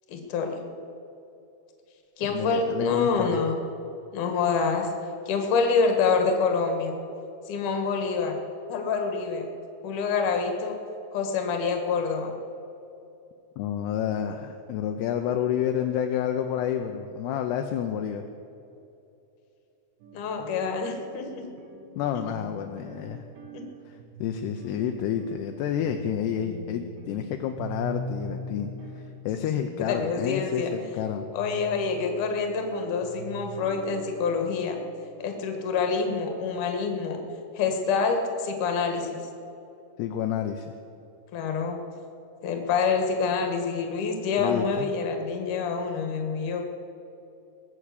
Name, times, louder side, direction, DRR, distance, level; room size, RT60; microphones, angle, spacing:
voice 1, 0.1-0.6 2.2-3.6 4.1-4.9 5.3-6.9 7.5-8.4 8.7-9.5 9.8-10.8 11.1-12.3 20.1-21.5 23.5-23.6 29.8-30.7 31.3-34.8 35.2-37.2 37.5-39.2 41.3-41.8 42.4-46.7, left 5 dB, 55° left, 4 dB, 2.6 m, -26 dB
voice 2, 2.3-3.4 13.6-18.2 22.0-23.2 23.9-28.7 29.0-31.3 40.0-40.7 44.4-44.9, left 9 dB, 80° left, 5 dB, 2.6 m, -29 dB
sound 1, 20.0-36.3, right 2 dB, 75° right, 4.2 m, -42 dB
20.5 x 7.4 x 8.3 m, 2.8 s
omnidirectional pair, 5.2 m